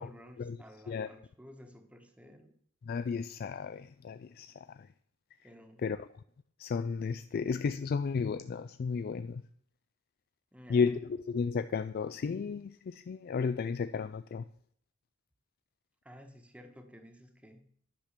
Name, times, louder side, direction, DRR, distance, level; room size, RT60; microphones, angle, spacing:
voice 1, 0.0-2.6 5.4-5.9 10.5-10.8 16.0-17.7, equal, 5° right, 1.2 m, -53 dB
voice 2, 2.9-4.9 5.8-6.0 6.6-9.4 10.7-14.4, left 5 dB, 45° left, 0.3 m, -33 dB
10.5 x 5.9 x 6.6 m
head